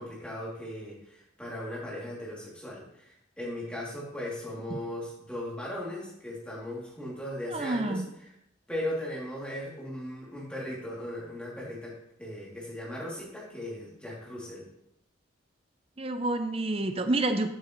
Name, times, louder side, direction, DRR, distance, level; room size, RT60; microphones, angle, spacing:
voice 1, 0.0-8.0 8.7-14.7, left 1 dB, 5° left, -6 dB, 2.7 m, -38 dB
voice 2, 7.5-8.1 16.0-17.5, right 2 dB, 30° right, 8 dB, 0.6 m, -28 dB
12.0 x 6.8 x 3.1 m, 0.78 s
head